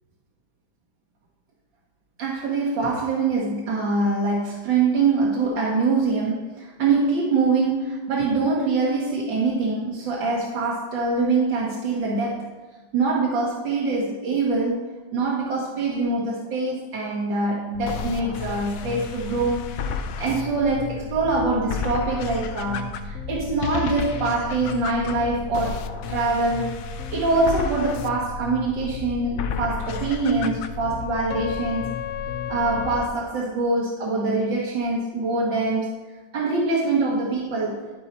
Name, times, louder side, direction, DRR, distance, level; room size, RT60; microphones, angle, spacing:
voice 1, 2.2-12.4 12.9-14.8 15.1-19.7 20.2-25.8 26.1-26.7 27.1-31.9 32.5-35.9 36.3-37.9, right 3 dB, 90° right, -4 dB, 1.9 m, -24 dB
sound 1, 17.7-33.1, left 6 dB, 75° left, 0.8 m, -32 dB
12.5 x 4.2 x 4.4 m, 1.3 s
omnidirectional pair, 2.0 m